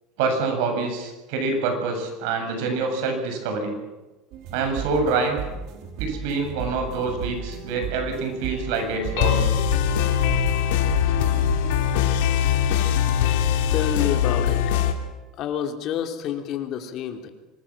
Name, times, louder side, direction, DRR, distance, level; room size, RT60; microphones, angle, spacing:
voice 1, 0.2-3.8 4.5-5.4 6.0-9.5 12.2-12.3 13.8-13.9, right 4 dB, 75° right, 5 dB, 7.4 m, -26 dB
sound 1, 4.3-11.9, right 6 dB, 60° right, 4.7 m, -35 dB
sound 2, 7.1-7.8 8.3-14.9, left 9 dB, 85° left, 3.1 m, -22 dB
voice 2, 13.7-14.8 15.4-17.3, left 9 dB, 50° left, 5 dB, 3.2 m, -28 dB
25.5 x 20.5 x 7.5 m, 1.1 s
supercardioid pair, 140°, 0 cm